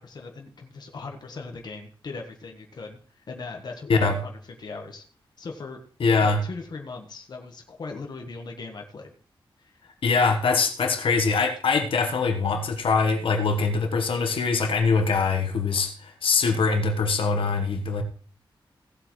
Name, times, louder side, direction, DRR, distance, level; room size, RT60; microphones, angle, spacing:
voice 1, 0.0-4.3 4.6-5.0 5.4-5.8 6.2-9.1 9.6-9.7, left 4 dB, 50° left, 2 dB, 1.4 m, -39 dB
voice 2, 6.0-6.4 10.0-18.0, left 4 dB, 80° left, 4 dB, 1.3 m, -23 dB
16.5 x 7.8 x 3.2 m, 0.41 s
wide cardioid pair, 180°, 9 cm